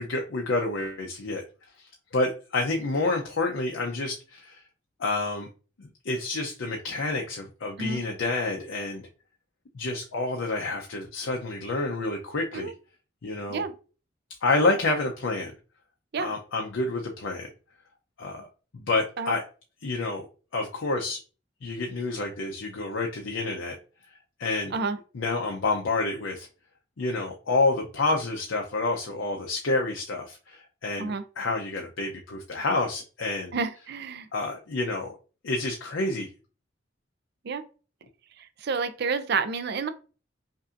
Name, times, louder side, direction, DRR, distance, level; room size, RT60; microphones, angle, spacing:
voice 1, 0.0-1.4 2.1-4.6 5.0-5.5 6.0-9.1 9.7-12.7 13.2-13.6 14.4-15.5 16.2-17.5 18.2-18.5 18.9-19.4 19.8-20.3 20.5-21.2 21.6-23.8 24.4-24.7 25.1-26.5 27.0-33.5 34.3-35.2 35.4-36.3, left 3 dB, 75° left, 0.6 m, -28 dB
voice 2, 33.5-34.3 37.4-37.6 38.6-39.9, right 5 dB, 55° right, 0.5 m, -29 dB
5.3 x 2.6 x 2.5 m
head